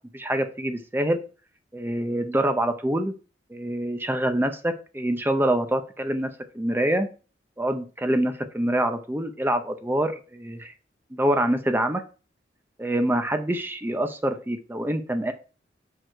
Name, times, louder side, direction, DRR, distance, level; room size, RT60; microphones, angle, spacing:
voice 1, 0.1-1.2 1.7-3.1 3.5-7.1 7.6-10.7 11.1-12.0 12.8-15.3, right 1 dB, 10° right, 7 dB, 0.6 m, -25 dB
6.2 x 4.8 x 4.5 m, 0.35 s
head